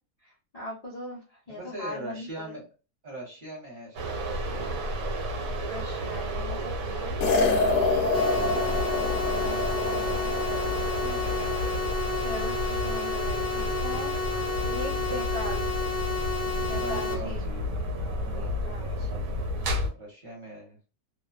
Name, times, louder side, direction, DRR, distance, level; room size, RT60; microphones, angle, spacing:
voice 1, 0.2-2.3 4.1-4.3 5.6-7.2 12.2-14.1 14.6-15.7 16.7-17.4 18.3-19.2, left 1 dB, 85° left, -5 dB, 0.3 m, -39 dB
voice 2, 1.5-2.6 3.0-4.9 6.3-7.3 7.7-9.0 9.3-12.1 16.7-20.8, right 1 dB, 40° right, -2 dB, 1.0 m, -43 dB
sound 1, 4.0-19.9, equal, 70° right, 1.0 m, -31 dB
sound 2, 7.2-11.7, left 3 dB, 70° left, 0.9 m, -27 dB
sound 3, 8.1-17.1, left 4 dB, 15° left, 0.6 m, -31 dB
2.5 x 2.2 x 2.3 m, 0.33 s
omnidirectional pair, 1.6 m